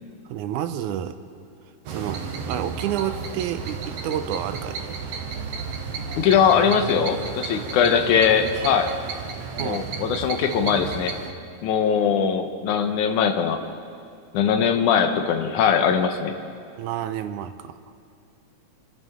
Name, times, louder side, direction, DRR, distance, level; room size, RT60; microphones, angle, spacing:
voice 1, 0.3-1.2 1.9-4.8 9.6-9.9 16.8-17.8, right 10 dB, 85° right, 10 dB, 2.1 m, -29 dB
sound 1, 1.9-11.3, right 5 dB, 65° right, 2.0 m, -33 dB
voice 2, 6.2-8.9 9.6-11.2 11.6-13.6 14.3-16.4, left 7 dB, 85° left, 7 dB, 2.4 m, -21 dB
27.5 x 12.5 x 3.6 m, 2.5 s
omnidirectional pair, 3.4 m